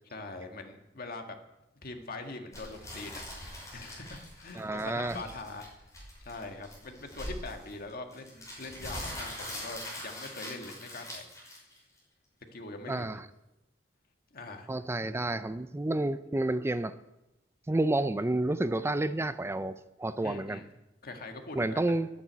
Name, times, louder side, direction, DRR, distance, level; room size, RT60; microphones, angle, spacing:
voice 1, 0.0-1.4 1.8-3.2 3.5-5.9 6.2-11.5 12.5-13.2 14.3-14.7 20.2-20.7 21.0-21.9, left 2 dB, 50° left, 5 dB, 1.8 m, -43 dB
sound 1, 2.5-12.0, left 1 dB, 15° left, 6.0 m, -42 dB
voice 2, 4.6-5.2 12.9-13.2 14.7-16.9 17.7-20.6 21.6-22.1, right 2 dB, 15° right, 13 dB, 0.4 m, -30 dB
10.0 x 9.7 x 9.2 m, 0.95 s
head